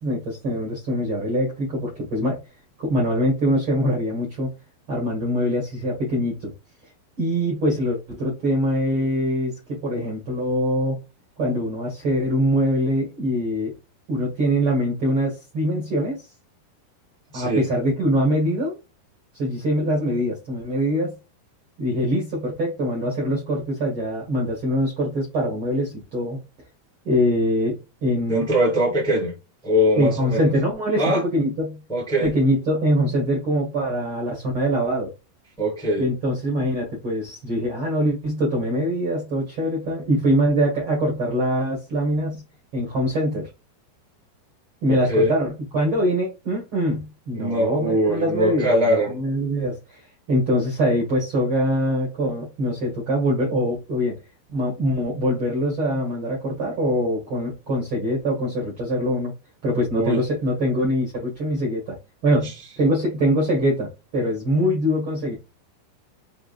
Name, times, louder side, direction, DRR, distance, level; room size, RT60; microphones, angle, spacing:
voice 1, 0.0-2.4 2.8-4.5 4.9-6.5 7.2-11.0 11.4-13.7 14.1-16.3 17.3-18.8 19.3-21.1 21.8-26.4 27.0-28.4 30.0-31.8 32.2-35.1 36.0-42.4 42.7-43.5 44.8-50.0 50.3-54.1 54.5-59.3 59.6-61.9 62.2-62.5 62.8-65.3, equal, 85° right, 1.1 m, -23 dB
voice 2, 17.3-17.7 28.3-29.3 29.6-30.5 30.9-31.2 31.9-32.3 35.6-36.0 44.9-45.3 47.3-49.2 59.9-60.2, equal, ahead, 1.0 m, -22 dB
6.9 x 2.5 x 2.4 m
omnidirectional pair, 4.8 m